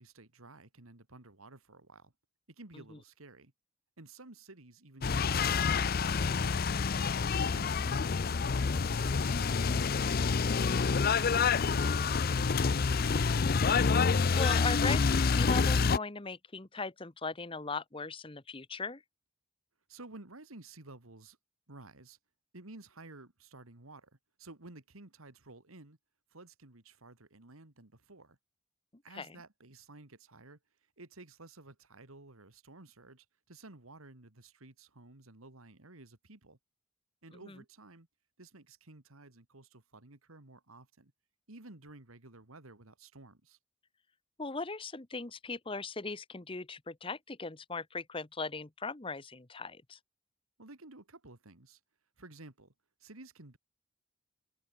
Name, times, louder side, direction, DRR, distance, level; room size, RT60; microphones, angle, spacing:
voice 1, 0.0-2.1 2.5-3.5 4.0-13.6 19.9-21.4 21.7-22.2 22.5-24.1 24.4-26.0 26.3-28.4 29.0-30.6 31.0-36.6 37.2-38.1 38.4-41.1 41.5-43.6 50.6-51.8 52.2-52.7 53.0-53.6, right 2 dB, 85° right, 2.4 m, -53 dB
sound 1, 5.0-16.0, left 5 dB, 45° left, 0.5 m, -28 dB
voice 2, 14.3-19.0 29.2-29.3 37.5-37.6 44.4-50.0, left 4 dB, 25° left, 1.0 m, -38 dB
head